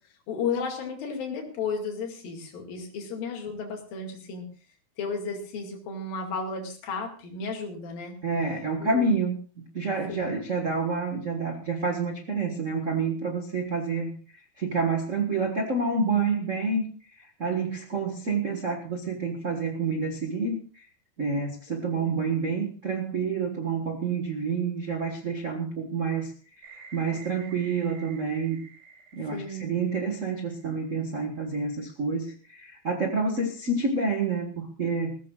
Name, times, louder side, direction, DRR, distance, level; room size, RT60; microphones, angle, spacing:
voice 1, 0.3-4.5 5.0-8.1 8.8-9.2 10.1-10.3 21.9-22.1 27.1-27.2 29.3-29.7, left 4 dB, 75° left, 1 dB, 4.0 m, -33 dB
voice 2, 8.2-14.1 14.6-16.9 17.2-20.8 21.2-28.6 29.1-35.2, right 4 dB, 65° right, 3 dB, 0.7 m, -28 dB
sound 1, 26.6-31.5, right 5 dB, 85° right, 4.0 m, -51 dB
21.0 x 15.5 x 2.4 m, 0.39 s
omnidirectional pair, 4.1 m